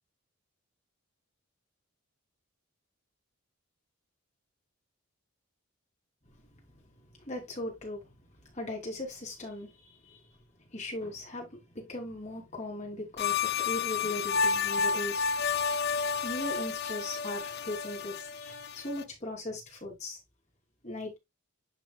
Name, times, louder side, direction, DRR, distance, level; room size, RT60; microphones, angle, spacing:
voice 1, 7.2-8.0 8.4-10.2 10.7-15.3 16.2-20.2 20.8-21.2, left 1 dB, 30° left, 2.9 m, -38 dB
sound 1, 13.2-19.0, left 5 dB, 50° left, 0.5 m, -31 dB
11.0 x 4.1 x 2.3 m
head